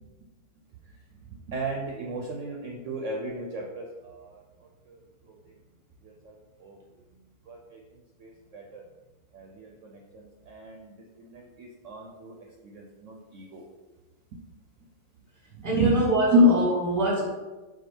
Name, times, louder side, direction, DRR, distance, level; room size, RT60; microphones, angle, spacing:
voice 1, 1.5-4.4 4.9-5.0 5.3-5.4 6.0-6.3 6.6-6.8 7.5-7.8 8.2-8.8 9.3-10.9 11.2-12.3 12.6-13.6 14.3-14.4 15.6-16.0 16.3-16.5, equal, 65° right, 0 dB, 0.8 m, -30 dB
voice 2, 15.6-17.2, right 2 dB, 15° right, -3 dB, 0.8 m, -25 dB
4.6 x 2.3 x 4.4 m, 1.2 s
omnidirectional pair, 1.6 m